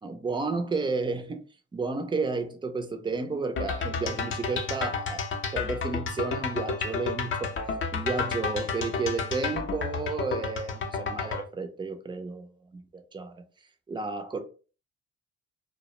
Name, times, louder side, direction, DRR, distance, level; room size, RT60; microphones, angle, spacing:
voice 1, 0.0-1.4 1.7-5.3 5.5-13.4 13.9-14.4, right 3 dB, 15° right, 0.4 m, -32 dB
sound 1, 3.6-11.4, left 4 dB, 40° left, 0.5 m, -31 dB
2.3 x 2.0 x 2.9 m
cardioid pair, 90°, 30 cm